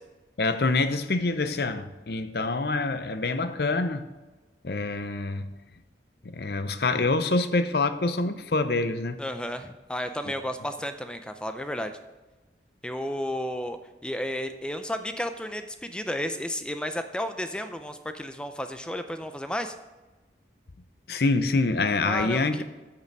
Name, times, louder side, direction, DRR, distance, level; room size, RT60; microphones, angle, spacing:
voice 1, 0.4-4.1 4.6-5.5 6.2-9.2 21.1-22.6, left 3 dB, 60° left, 11 dB, 0.6 m, -26 dB
voice 2, 9.2-11.9 12.8-13.8 14.0-19.7 22.0-22.6, equal, 5° left, 8 dB, 0.4 m, -32 dB
8.5 x 6.7 x 6.0 m, 1.2 s
head